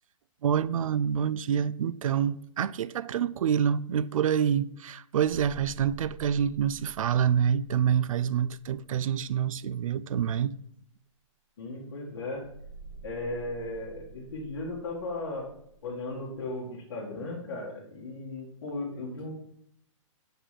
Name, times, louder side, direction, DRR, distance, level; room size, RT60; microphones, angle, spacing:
voice 1, 0.4-10.5, right 8 dB, 80° right, 0.4 m, -27 dB
sound 1, 8.6-9.6 12.3-16.5, right 4 dB, ahead, 1.8 m, -49 dB
voice 2, 11.6-12.4 13.0-15.5 15.8-19.3, left 2 dB, 45° left, 1.7 m, -36 dB
5.2 x 4.9 x 5.7 m
hypercardioid pair, 175°, 17 cm